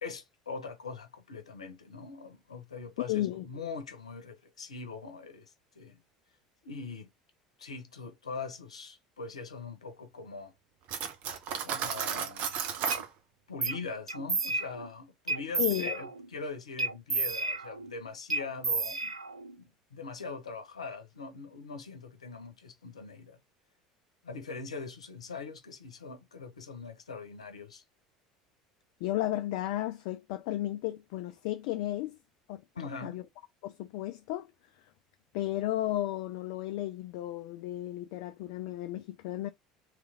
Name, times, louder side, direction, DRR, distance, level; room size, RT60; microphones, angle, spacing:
voice 1, 0.0-6.0 6.6-7.1 7.6-10.5 11.6-12.6 13.5-19.1 19.6-23.4 24.2-27.8 32.7-33.2, left 4 dB, 80° left, 0.8 m, -42 dB
voice 2, 3.0-3.4 15.6-16.0 29.0-32.2 32.5-32.6 33.0-33.2 33.6-34.5 35.3-39.5, left 14 dB, 60° left, 0.4 m, -33 dB
Cutlery silverware, 10.9-13.1, right 8 dB, 50° right, 0.8 m, -34 dB
sound 1, 12.9-13.0 13.6-13.8 14.1-14.9 15.3-16.3 16.8-17.9 18.3-19.5, right 3 dB, 90° right, 0.4 m, -32 dB
3.2 x 3.1 x 3.4 m
figure-of-eight pair, 70°, 3 cm